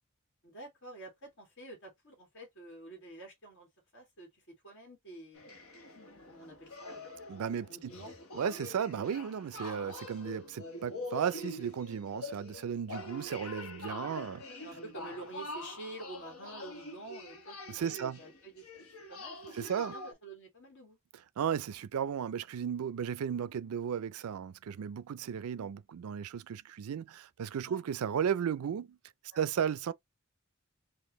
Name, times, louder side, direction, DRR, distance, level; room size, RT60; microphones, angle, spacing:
voice 1, 0.4-3.7 3.9-5.5 6.2-7.1 7.7-8.2 8.6-8.8 14.3-21.0 27.6-27.8 29.3-29.4, right 2 dB, 60° left, 2.0 m, -49 dB
sound 1, 5.3-20.1, left 2 dB, 80° left, 1.2 m, -45 dB
voice 2, 7.3-7.9 8.3-14.4 17.7-18.2 19.5-19.9 21.4-29.0 29.3-29.9, right 8 dB, 90° right, 0.4 m, -35 dB
4.5 x 2.5 x 3.0 m
head